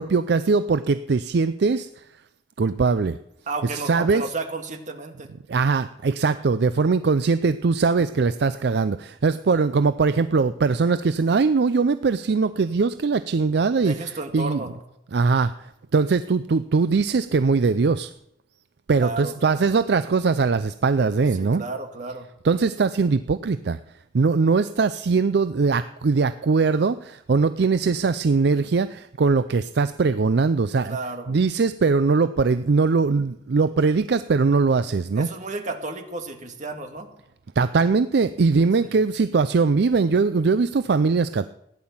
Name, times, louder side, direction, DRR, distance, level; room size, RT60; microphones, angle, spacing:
voice 1, 0.0-1.9 2.6-3.2 3.9-4.2 5.5-13.9 14.3-14.6 15.1-15.5 15.9-18.1 18.9-21.6 22.4-23.8 24.1-31.0 31.3-35.3 37.6-41.5, right 4 dB, 65° right, 13 dB, 0.5 m, -21 dB
voice 2, 3.5-5.4 9.4-9.6 13.8-14.8 19.0-19.4 21.3-22.3 30.9-31.4 35.2-37.1 38.8-39.0, right 3 dB, 45° right, 5 dB, 2.0 m, -33 dB
15.5 x 10.5 x 7.2 m, 0.81 s
head